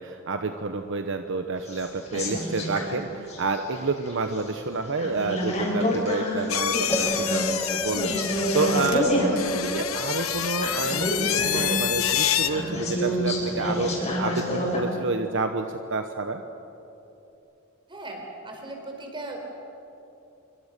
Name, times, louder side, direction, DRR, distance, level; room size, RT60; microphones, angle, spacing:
voice 1, 0.0-16.4, right 3 dB, 60° right, 6 dB, 1.1 m, -29 dB
sound 1, 1.7-2.9 3.3-4.4 4.9-14.8, equal, 35° left, 6.6 m, -28 dB
sound 2, 6.5-12.5, left 11 dB, 70° left, 1.1 m, -27 dB
sound 3, 6.9-17.4, equal, 10° left, 1.2 m, -37 dB
voice 2, 17.9-19.4, right 2 dB, 25° right, 2 dB, 4.5 m, -38 dB
26.5 x 24.0 x 6.8 m, 2.8 s
head